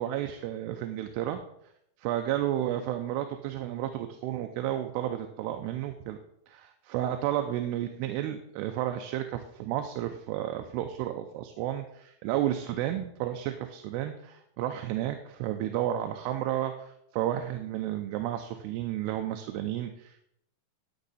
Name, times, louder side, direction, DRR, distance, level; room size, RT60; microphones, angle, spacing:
voice 1, 0.0-1.4 2.0-6.2 6.5-20.2, right 12 dB, 90° right, 6 dB, 2.7 m, -32 dB
12.0 x 6.1 x 4.1 m, 0.75 s
omnidirectional pair, 4.7 m